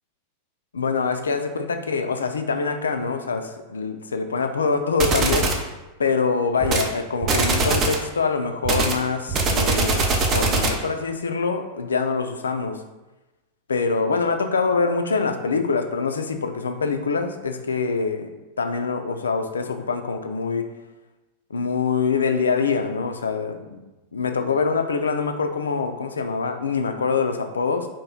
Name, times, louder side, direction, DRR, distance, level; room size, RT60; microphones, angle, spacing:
voice 1, 0.7-5.5 6.0-12.8 13.7-18.3 18.6-20.7 21.5-23.8 24.1-27.9, left 4 dB, 70° left, 7 dB, 0.3 m, -24 dB
sound 1, 5.0-5.6 6.6-6.9 7.2-8.1 8.6-10.9, right 3 dB, 30° right, 0.5 m, -22 dB
2.9 x 2.6 x 3.7 m, 1.1 s
figure-of-eight pair, 90°, 0 cm